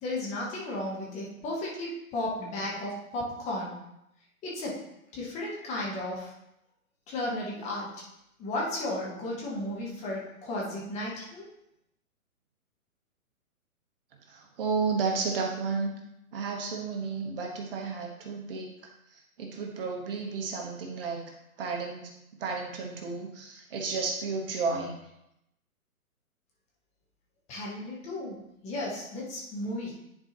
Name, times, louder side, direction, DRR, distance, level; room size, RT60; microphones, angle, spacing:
voice 1, 0.0-3.8 4.4-4.8 5.1-6.3 7.1-7.9 8.4-11.5 27.5-28.4 28.6-29.9, left 1 dB, 15° left, -4 dB, 1.2 m, -34 dB
voice 2, 14.3-15.9 16.3-18.7 19.1-21.2 21.6-22.1 22.4-24.9, right 4 dB, 40° right, 1 dB, 1.2 m, -32 dB
10.0 x 4.4 x 3.0 m, 0.83 s
hypercardioid pair, 135°, 43 cm